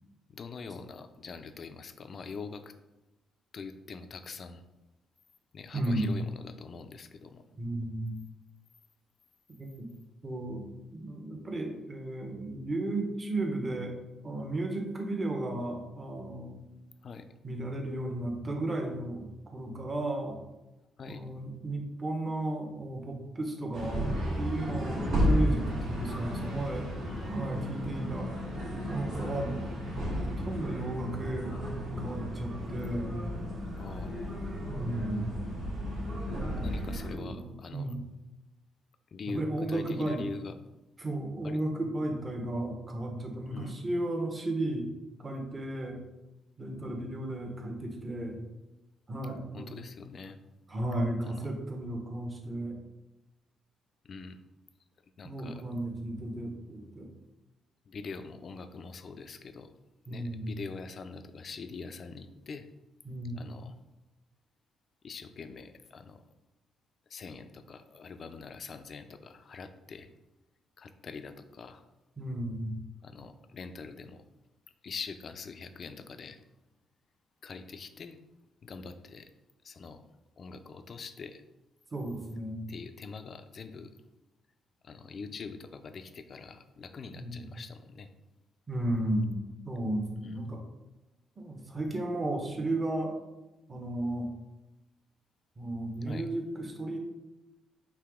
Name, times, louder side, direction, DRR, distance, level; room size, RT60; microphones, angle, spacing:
voice 1, 0.3-2.7 3.5-4.6 5.5-7.4 17.0-17.3 21.0-21.2 27.1-27.3 33.8-34.3 36.5-38.0 39.1-40.5 41.4-41.6 43.5-43.8 49.5-50.4 51.2-51.5 54.0-54.4 55.2-55.6 57.9-59.7 60.1-62.7 63.3-63.8 65.0-66.2 67.1-70.1 70.8-71.8 73.0-74.2 74.8-76.4 77.4-78.2 78.6-79.3 79.6-80.0 80.4-81.4 82.7-84.0 84.8-88.1 90.2-90.4 96.0-96.3, left 4 dB, 50° left, 9 dB, 0.4 m, -43 dB
voice 2, 5.7-6.1 7.6-8.1 9.6-9.7 10.2-10.7 10.9-13.9 14.2-16.6 17.4-20.4 21.1-26.9 27.2-28.4 28.9-29.6 29.8-33.2 34.7-35.5 36.6-36.7 37.1-38.0 39.3-40.2 41.0-44.9 45.2-46.0 46.6-48.4 49.1-49.7 50.7-52.8 55.2-57.1 60.1-60.5 63.0-63.5 72.2-72.8 81.9-82.6 87.1-87.5 88.7-89.4 89.7-90.6 91.4-93.1 93.7-94.3 95.6-97.0, right 1 dB, 30° right, 2 dB, 1.0 m, -34 dB
sound 1, 23.7-37.1, equal, 85° right, 1.4 m, -33 dB
4.7 x 3.0 x 3.6 m, 1.0 s
cardioid pair, 90°, 0 cm